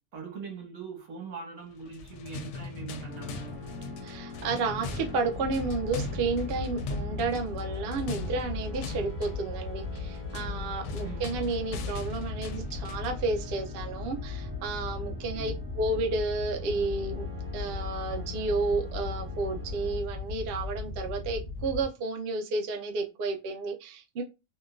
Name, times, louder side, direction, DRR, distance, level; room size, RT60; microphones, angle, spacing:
voice 1, 0.1-3.4 11.0-11.2 15.3-15.7, right 5 dB, 75° right, 1.5 m, -41 dB
sound 1, 1.8-13.2, left 3 dB, 65° left, 0.8 m, -40 dB
sound 2, 3.1-20.0, left 2 dB, 10° left, 0.8 m, -46 dB
voice 2, 4.0-17.3 17.5-24.2, right 3 dB, 55° right, 0.7 m, -31 dB
Wind / Boat Water vehicle, 5.3-21.8, left 4 dB, 15° right, 1.7 m, -37 dB
3.7 x 2.3 x 2.4 m
omnidirectional pair, 1.5 m